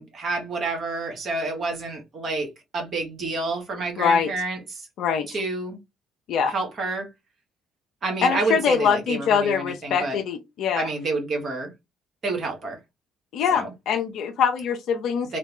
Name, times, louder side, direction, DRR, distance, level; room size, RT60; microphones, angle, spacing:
voice 1, 0.0-4.9 5.3-5.8 6.5-7.1 8.0-10.2 10.8-11.7 12.2-12.8 13.5-13.7 15.3-15.4, right 3 dB, 45° right, 1.4 m, -29 dB
voice 2, 4.0-4.3 5.0-5.3 6.3-6.5 8.2-10.9 13.3-15.3, left 7 dB, 60° left, 0.5 m, -23 dB
3.2 x 2.1 x 2.9 m
hypercardioid pair, 50°, 0 cm